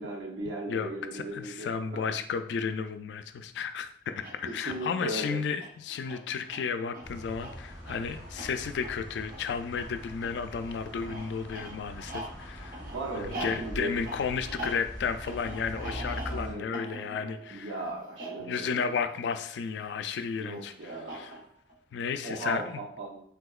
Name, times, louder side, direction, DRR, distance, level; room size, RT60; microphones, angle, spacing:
voice 1, 0.0-1.9 4.4-5.4 12.8-13.9 16.3-16.7 17.5-18.8 20.3-21.3 22.2-23.2, right 2 dB, 80° right, -2 dB, 0.7 m, -37 dB
voice 2, 0.7-12.8 13.2-17.8 18.4-21.4 21.9-22.8, left 6 dB, 75° left, 10 dB, 0.3 m, -33 dB
sound 1, 4.1-19.9 20.9-21.7, right 1 dB, 50° right, 1.0 m, -44 dB
sound 2, 7.0-16.5, equal, 15° right, 1.3 m, -43 dB
3.6 x 2.8 x 2.3 m, 0.65 s
head